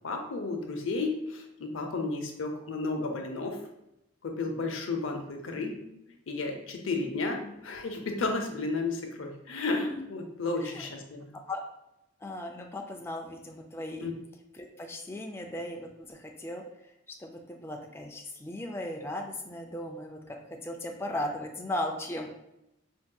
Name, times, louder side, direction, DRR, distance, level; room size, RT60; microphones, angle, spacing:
voice 1, 0.0-3.6 4.2-5.7 6.3-11.3 14.0-14.1, left 3 dB, 80° left, 4 dB, 0.6 m, -33 dB
voice 2, 5.6-5.9 7.0-7.6 9.9-10.0 10.6-10.9 11.3-11.6 12.2-14.1 14.5-16.6 17.1-20.4 20.6-22.3, left 1 dB, 10° left, 1 dB, 0.3 m, -37 dB
4.5 x 2.7 x 2.2 m, 0.86 s
head